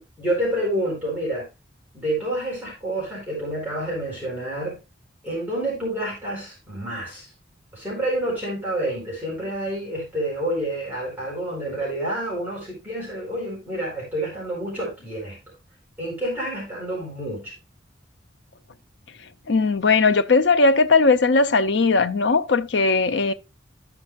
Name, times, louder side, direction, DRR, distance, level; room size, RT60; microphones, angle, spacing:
voice 1, 0.0-1.4 1.9-4.8 5.2-7.3 7.7-15.4 16.0-17.5, right 1 dB, 10° right, 4.3 m, -28 dB
voice 2, 19.5-23.3, left 4 dB, 70° left, 0.7 m, -18 dB
13.0 x 6.0 x 2.4 m
head